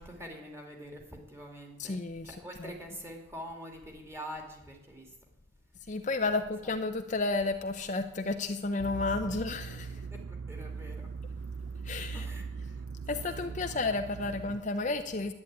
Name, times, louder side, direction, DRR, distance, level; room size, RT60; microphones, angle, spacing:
voice 1, 0.0-2.0 2.2-5.2 6.2-6.7 9.2-9.4 10.0-11.1 12.1-13.8, equal, 15° right, 1 dB, 2.5 m, -46 dB
voice 2, 1.8-2.3 2.6-2.7 5.9-10.0 11.8-12.3 13.1-15.3, left 3 dB, 35° left, 7 dB, 0.6 m, -32 dB
sound 1, 8.8-14.6, right 5 dB, 70° right, 0.4 m, -40 dB
11.0 x 10.0 x 8.7 m, 0.92 s
head